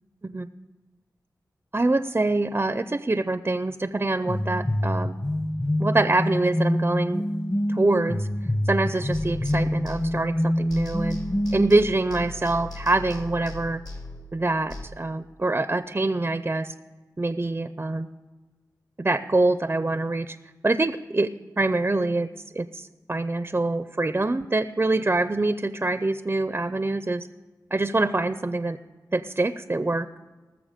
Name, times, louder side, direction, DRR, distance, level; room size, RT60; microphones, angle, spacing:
voice 1, 1.7-5.2 5.8-7.2 7.7-8.3 8.7-11.2 11.5-13.8 14.3-16.7 17.2-18.1 19.0-20.4 20.6-21.3 21.6-22.3 22.5-27.3 27.7-28.8 29.1-30.2, right 2 dB, 30° right, 12 dB, 0.5 m, -25 dB
sound 1, 4.3-11.9, left 1 dB, 30° left, 1.1 m, -26 dB
sound 2, 9.1-10.4 10.7-14.9, left 2 dB, 55° left, 2.2 m, -38 dB
19.5 x 6.9 x 5.0 m, 1.3 s
wide cardioid pair, 60°, 7 cm